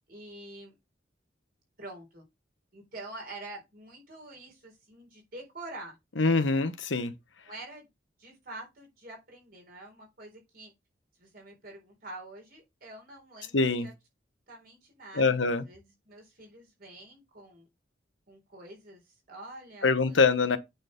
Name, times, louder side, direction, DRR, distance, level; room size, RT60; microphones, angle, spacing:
voice 1, 0.1-0.8 1.8-2.2 2.7-6.0 7.4-7.9 8.2-10.7 11.2-13.9 14.5-17.7 18.3-20.4, right 2 dB, 50° right, 3.9 m, -46 dB
voice 2, 6.2-7.1 13.5-13.9 15.2-15.6 19.8-20.6, left 4 dB, 90° left, 1.1 m, -24 dB
8.8 x 4.0 x 5.2 m
head